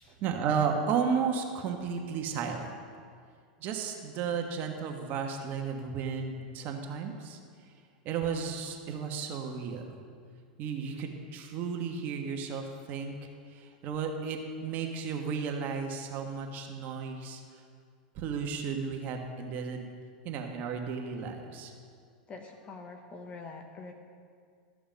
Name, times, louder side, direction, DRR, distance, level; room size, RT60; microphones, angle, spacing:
voice 1, 0.2-2.7 3.6-7.4 8.0-10.0 10.6-13.2 13.5-17.4 18.1-19.9 20.2-21.7, right 6 dB, 45° right, 3 dB, 1.3 m, -33 dB
voice 2, 22.3-23.9, left 3 dB, 30° left, 4 dB, 1.0 m, -45 dB
13.5 x 6.9 x 5.2 m, 2.1 s
hypercardioid pair, 120°, 4 cm